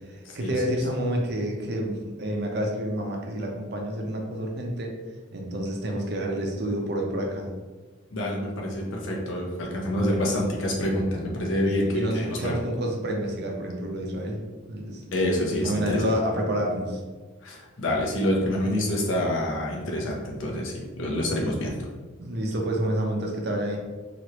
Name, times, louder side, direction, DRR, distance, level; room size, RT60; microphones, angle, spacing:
voice 1, 0.1-4.9 5.3-7.5 11.6-14.4 14.7-15.0 15.6-17.0 22.2-23.8, equal, 60° right, 1 dB, 0.6 m, -29 dB
voice 2, 8.1-12.5 15.1-16.1 17.4-21.8, left 1 dB, 85° left, -1 dB, 0.7 m, -27 dB
3.0 x 2.5 x 2.9 m, 1.3 s
head